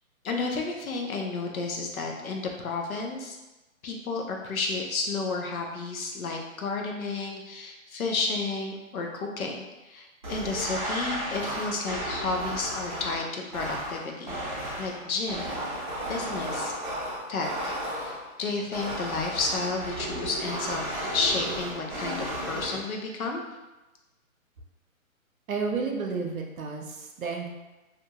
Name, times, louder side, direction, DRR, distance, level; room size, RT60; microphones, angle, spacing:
voice 1, 0.2-3.3 3.8-14.4 14.8-15.5 16.1-16.7 17.3-20.8 21.1-23.4, left 3 dB, 80° left, 1 dB, 0.7 m, -31 dB
sound 1, 10.2-18.3 18.7-22.8, right 1 dB, 35° right, 0.5 m, -34 dB
voice 2, 25.5-27.5, right 4 dB, 75° right, 1 dB, 0.6 m, -31 dB
2.6 x 2.2 x 2.8 m, 1.1 s
hypercardioid pair, 165°, 42 cm